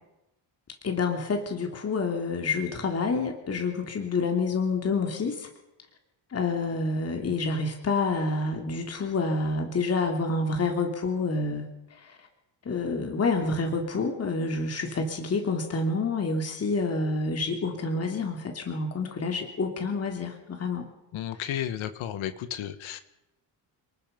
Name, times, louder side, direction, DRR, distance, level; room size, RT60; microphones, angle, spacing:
voice 1, 0.8-5.5 6.3-12.3 12.6-20.9 21.3-21.4, left 3 dB, 30° left, 3 dB, 3.1 m, -28 dB
voice 2, 21.1-23.0, left 11 dB, 85° left, 10 dB, 1.9 m, -33 dB
29.5 x 19.5 x 5.5 m, 0.90 s
cardioid pair, 150°, 47 cm